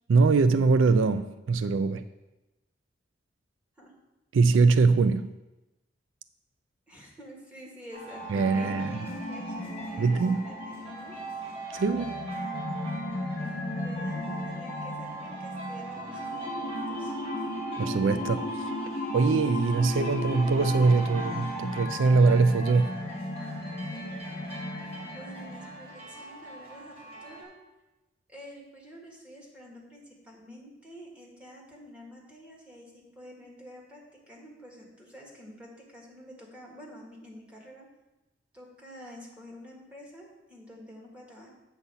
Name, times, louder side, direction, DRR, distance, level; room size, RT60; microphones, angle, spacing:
voice 1, 0.1-2.0 4.3-5.3 8.3-9.0 10.0-10.5 11.7-12.2 17.8-18.7 19.1-22.9, right 4 dB, 90° right, 0.4 m, -23 dB
voice 2, 6.9-11.2 13.7-17.1 25.0-27.5 28.3-37.9 38.5-41.5, equal, 5° right, 1.8 m, -48 dB
sound 1, 7.9-27.4, right 2 dB, 35° right, 3.0 m, -40 dB
sound 2, 8.1-26.0, left 2 dB, 45° left, 1.0 m, -36 dB
8.2 x 4.2 x 6.9 m
head